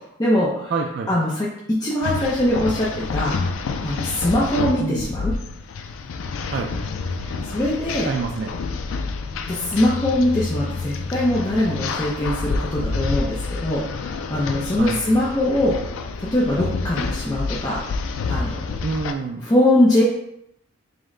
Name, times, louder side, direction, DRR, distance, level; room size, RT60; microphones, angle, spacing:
voice 1, 0.0-0.7 1.1-3.4 3.8-5.3 7.2-8.1 9.5-15.8 16.2-18.7 19.4-20.0, left 1 dB, 20° left, -6 dB, 0.5 m, -22 dB
voice 2, 0.7-1.1 4.8-5.1 6.5-6.7 8.0-8.5 14.8-15.0 18.8-19.4, right 4 dB, 55° right, 2 dB, 0.3 m, -26 dB
sound 1, 2.0-19.1, left 4 dB, 75° left, 0.4 m, -28 dB
5.1 x 2.1 x 3.7 m, 0.78 s
head